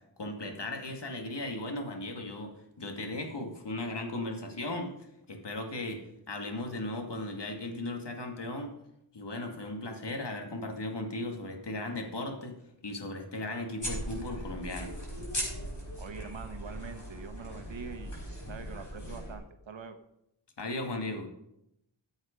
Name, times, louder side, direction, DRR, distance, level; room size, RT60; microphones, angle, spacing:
voice 1, 0.2-4.9 5.3-8.7 9.1-12.6 12.8-15.0 20.6-21.3, left 2 dB, 60° left, 3 dB, 2.2 m, -37 dB
sound 1, 13.8-19.4, equal, 40° left, 5.3 m, -39 dB
voice 2, 16.0-18.1 18.5-20.0, right 5 dB, 75° right, 8 dB, 1.2 m, -44 dB
14.0 x 7.9 x 5.2 m, 0.81 s
wide cardioid pair, 100°, 46 cm